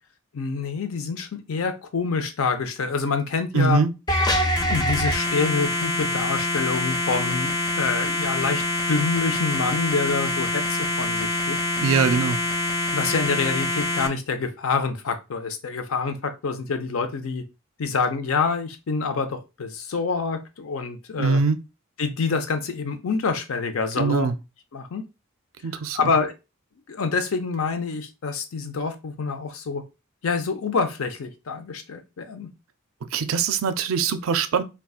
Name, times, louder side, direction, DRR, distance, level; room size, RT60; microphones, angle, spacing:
voice 1, 0.3-3.8 4.7-11.9 12.9-17.4 17.8-21.4 22.0-24.3 24.7-25.0 25.9-26.3 26.9-29.8 30.2-32.5, left 4 dB, 70° left, 0.5 m, -27 dB
voice 2, 3.5-3.9 11.8-12.4 21.2-21.6 24.0-24.3 25.6-26.0 33.1-34.6, right 5 dB, 65° right, 0.4 m, -22 dB
sound 1, 4.1-14.1, left 1 dB, 20° left, 0.4 m, -25 dB
3.8 x 2.3 x 2.3 m
head